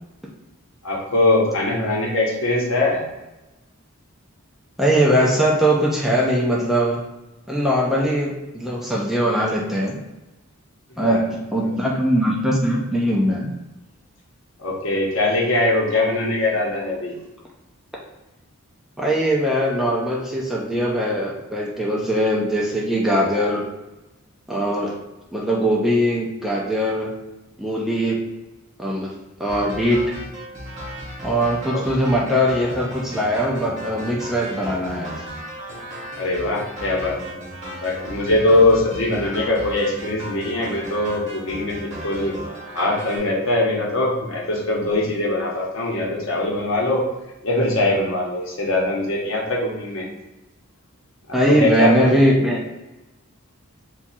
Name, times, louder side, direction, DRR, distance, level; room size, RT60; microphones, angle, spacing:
voice 1, 0.8-3.0 11.0-11.2 11.6-11.7 14.6-17.1 31.7-31.8 36.2-42.3 42.7-47.0 47.4-50.1 51.5-52.1, left 2 dB, 65° left, -2 dB, 0.9 m, -22 dB
voice 2, 4.8-7.0 7.5-10.0 11.0-13.5 19.0-23.6 24.5-24.9 25.3-27.1 27.6-28.2 28.8-29.1 29.4-30.0 31.2-35.2 51.3-52.6, equal, ahead, -4 dB, 0.4 m, -21 dB
sound 1, 29.5-43.2, equal, 35° right, 1.0 m, -36 dB
2.6 x 2.3 x 4.0 m, 1.0 s
head